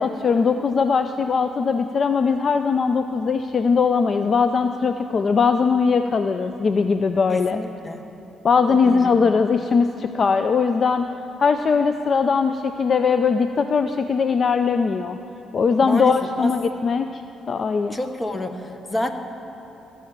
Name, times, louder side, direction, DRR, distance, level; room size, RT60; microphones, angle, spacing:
voice 1, 0.0-7.6 8.4-11.1 11.4-15.2 15.5-17.2 17.5-17.9, left 5 dB, 45° left, 8 dB, 0.4 m, -20 dB
voice 2, 7.3-8.1 8.7-9.2 15.8-16.5 17.9-19.1, left 1 dB, 20° left, 7 dB, 0.9 m, -29 dB
16.5 x 5.7 x 7.2 m, 3.0 s
cardioid pair, 90°, 0 cm